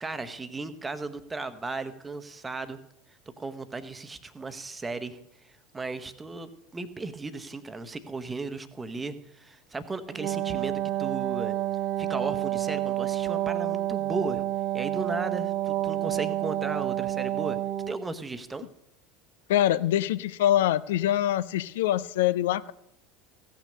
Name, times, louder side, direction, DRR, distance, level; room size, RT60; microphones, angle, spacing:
voice 1, 0.0-2.8 3.4-5.2 5.4-11.6 12.0-14.5 14.7-17.6 17.9-18.7, right 3 dB, 15° right, 11 dB, 0.9 m, -36 dB
Wind instrument woodwind instrument, 10.1-18.1, right 13 dB, 50° right, 0.5 m, -29 dB
voice 2, 19.5-22.7, left 12 dB, 70° left, 17 dB, 0.3 m, -24 dB
15.5 x 6.0 x 6.5 m, 0.78 s
figure-of-eight pair, 75°, 0 cm